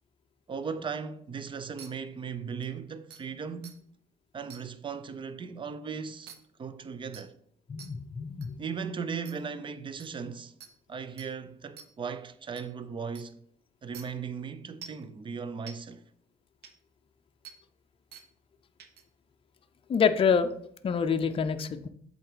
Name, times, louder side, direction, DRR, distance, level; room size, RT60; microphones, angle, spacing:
voice 1, 0.5-3.8 4.3-6.3 6.6-7.3 8.6-10.5 10.9-13.4 13.8-16.0, right 6 dB, 30° right, 0.6 m, -37 dB
sound 1, 1.8-1.9 2.6-2.7 3.1-3.2 3.6-3.7 4.5-4.6 6.3-6.4 7.1-7.3 7.8-7.9 8.4-8.5 9.3-9.4 10.0-10.1 10.6-10.7 11.2-11.3 11.8-11.9 12.6-12.7 13.2-13.3 13.9-14.0 14.8-15.0 15.7-15.8 16.6-16.7 17.4-17.6 18.1-18.3 18.8-19.0, right 7 dB, 75° right, 1.0 m, -46 dB
voice 2, 7.7-8.5 19.9-20.5 20.8-21.9, left 6 dB, 30° left, 0.6 m, -26 dB
7.6 x 4.0 x 5.0 m
cardioid pair, 110°, 17 cm